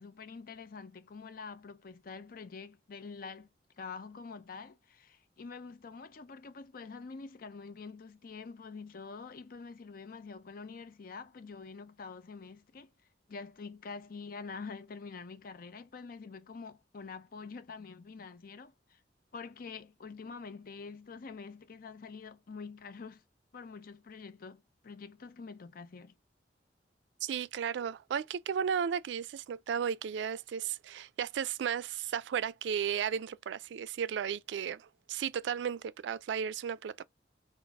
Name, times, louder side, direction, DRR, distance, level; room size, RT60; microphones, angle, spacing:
voice 1, 0.0-3.5 3.8-12.9 13.3-19.0 19.3-23.2 23.5-26.1, left 4 dB, 55° left, 0.5 m, -46 dB
voice 2, 27.2-37.0, right 8 dB, 80° right, 0.3 m, -34 dB
4.0 x 2.0 x 3.4 m
head